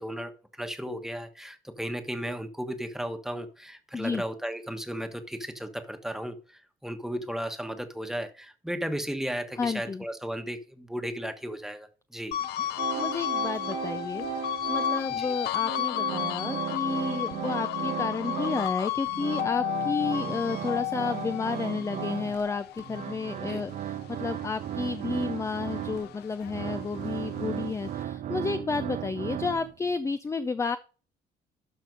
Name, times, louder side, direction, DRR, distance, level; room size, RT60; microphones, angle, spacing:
voice 1, 0.0-12.4 15.1-15.4 23.5-23.6, equal, ahead, 1.2 m, -35 dB
voice 2, 9.6-10.0 12.6-14.3 14.7-30.8, left 4 dB, 15° left, 0.5 m, -31 dB
sound 1, 12.3-24.9 25.3-27.0, left 12 dB, 75° left, 0.6 m, -33 dB
sound 2, 12.8-15.2 15.5-18.8 19.1-29.9, right 11 dB, 50° right, 0.5 m, -36 dB
12.5 x 4.2 x 5.2 m
cardioid pair, 110°, 17 cm